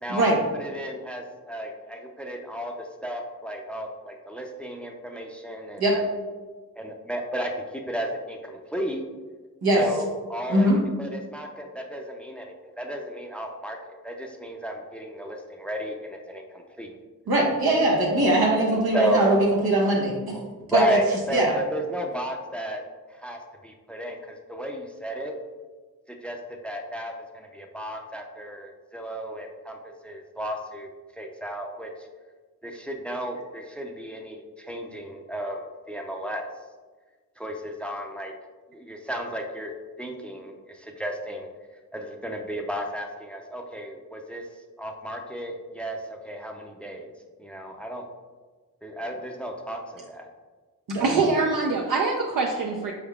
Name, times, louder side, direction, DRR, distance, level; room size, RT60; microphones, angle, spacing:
voice 1, 0.0-6.0 6.8-9.0 9.8-10.7 11.0-16.9 18.9-19.3 20.7-22.8 23.1-25.3 26.1-32.1 32.6-36.5 37.4-38.3 38.7-39.7 40.0-41.5 41.9-44.4 44.8-47.1 47.4-48.1 48.8-49.8 50.1-50.3, equal, 5° left, 2 dB, 0.5 m, -33 dB
voice 2, 17.3-20.4 20.7-21.0 21.3-21.6 50.9-51.2, right 1 dB, 85° right, -3 dB, 1.0 m, -21 dB
voice 3, 50.9-52.9, right 3 dB, 65° right, 0 dB, 0.5 m, -24 dB
4.5 x 3.5 x 2.4 m, 1.4 s
cardioid pair, 40°, 36 cm